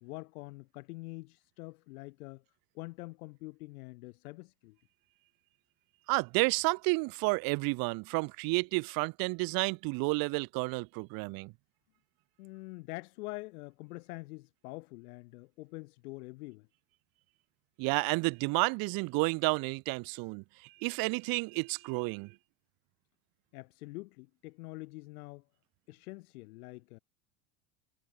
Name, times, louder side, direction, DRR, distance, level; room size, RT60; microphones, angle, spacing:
voice 1, 0.0-2.4 2.7-4.8 12.4-16.7 23.5-25.4 25.9-27.0, left 23 dB, 70° left, 2.3 m, -45 dB
voice 2, 6.1-11.5 17.8-20.4 20.8-22.3, right 28 dB, 50° right, 0.7 m, -31 dB
hypercardioid pair, 90°, 46 cm